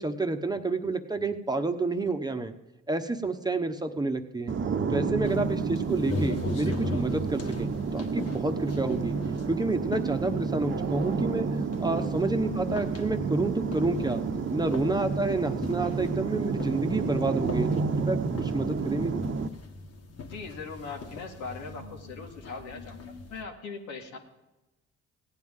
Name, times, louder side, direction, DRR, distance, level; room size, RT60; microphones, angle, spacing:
voice 1, 0.0-2.5 2.9-4.5 4.9-9.2 9.5-11.5 11.8-14.2 14.5-19.2, right 2 dB, 15° right, 5 dB, 1.0 m, -29 dB
sound 1, 4.5-19.5, right 5 dB, 40° right, 0.8 m, -30 dB
sound 2, 5.2-23.4, left 3 dB, 55° left, 1.5 m, -41 dB
voice 2, 11.8-12.2 20.3-23.0 23.3-24.2, left 4 dB, 85° left, 1 dB, 1.9 m, -40 dB
16.5 x 9.3 x 3.7 m, 1.0 s
supercardioid pair, 70°, 29 cm